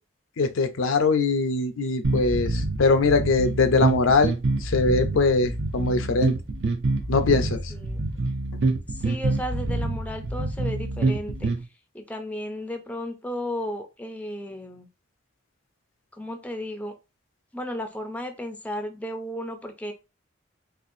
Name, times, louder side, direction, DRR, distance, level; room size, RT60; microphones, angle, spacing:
voice 1, 0.4-4.3 4.6-6.3 7.1-7.7, left 3 dB, 85° left, 0.6 m, -22 dB
sound 1, 2.0-11.6, right 2 dB, 60° right, 0.7 m, -26 dB
voice 2, 7.7-8.0 8.9-11.5 11.9-14.9 16.2-16.9 17.5-19.9, left 1 dB, 5° left, 0.4 m, -34 dB
4.4 x 2.5 x 2.6 m
head